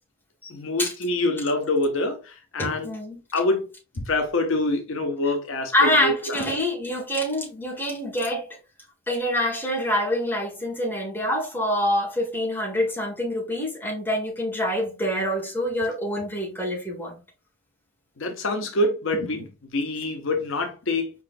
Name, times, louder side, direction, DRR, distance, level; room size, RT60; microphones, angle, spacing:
voice 1, 0.5-2.9 3.3-3.6 4.0-6.4 18.2-21.1, left 2 dB, 65° left, 0.7 m, -26 dB
voice 2, 2.6-3.2 5.7-8.5 9.1-17.2, left 1 dB, 10° left, 1.5 m, -26 dB
4.9 x 3.7 x 2.5 m
head